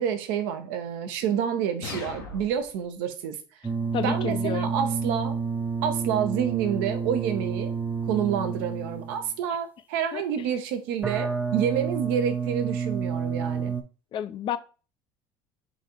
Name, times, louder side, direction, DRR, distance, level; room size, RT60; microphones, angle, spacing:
voice 1, 0.0-3.4 4.0-5.4 5.8-7.7 8.1-13.7, right 8 dB, 80° right, 0.6 m, -28 dB
sound 1, 1.8-2.8, left 4 dB, 80° left, 0.9 m, -38 dB
sound 2, 3.6-9.3 11.0-13.8, right 5 dB, 15° right, 0.5 m, -29 dB
voice 2, 3.9-4.7 10.1-10.2 14.1-14.6, left 9 dB, 45° left, 0.4 m, -30 dB
4.0 x 2.5 x 4.0 m
supercardioid pair, 80°, 11 cm